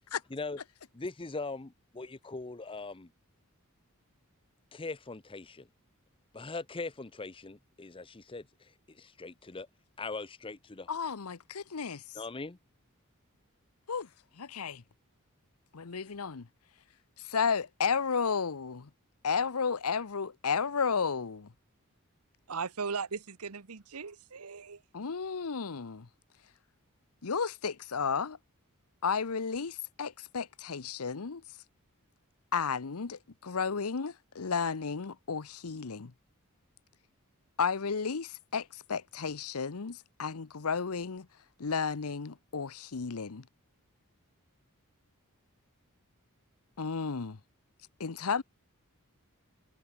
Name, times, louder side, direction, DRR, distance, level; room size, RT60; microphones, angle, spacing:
voice 1, 0.9-3.1 4.7-5.7 6.3-9.7 10.0-10.9 12.1-12.6, left 3 dB, 25° left, 0.7 m, -41 dB
voice 2, 10.9-12.0 13.9-14.1 14.4-14.8 15.7-16.5 17.3-18.9 19.2-21.5 24.9-26.1 27.2-28.4 29.0-31.4 32.5-36.1 37.6-41.3 41.6-43.4 46.8-47.4 48.0-48.4, left 5 dB, 75° left, 0.8 m, -33 dB
voice 3, 22.5-24.8, right 5 dB, 80° right, 1.1 m, -38 dB
head